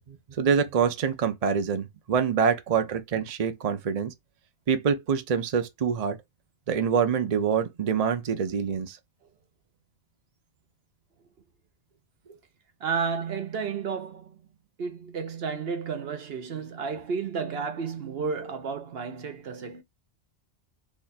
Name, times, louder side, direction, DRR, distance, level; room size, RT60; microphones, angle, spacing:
voice 1, 0.1-4.1 4.7-6.2 6.7-9.0, right 6 dB, 45° right, 0.6 m, -26 dB
voice 2, 12.8-14.4 14.8-19.8, right 5 dB, 65° right, 0.9 m, -32 dB
2.9 x 2.3 x 4.0 m
omnidirectional pair, 1.1 m